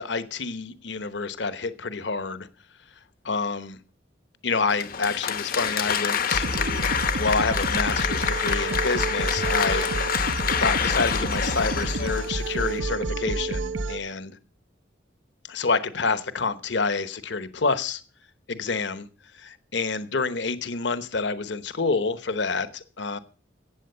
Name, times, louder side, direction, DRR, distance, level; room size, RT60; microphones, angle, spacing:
voice 1, 0.0-2.5 3.2-3.8 4.4-9.9 10.3-14.4 15.5-18.0 18.5-19.1 19.3-23.2, left 4 dB, 65° left, 12 dB, 1.0 m, -28 dB
Applause, 4.7-12.8, left 7 dB, 50° left, 0.8 m, -27 dB
sound 1, 6.3-14.0, right 2 dB, 85° right, 1.0 m, -29 dB
15.0 x 8.7 x 6.7 m, 0.39 s
head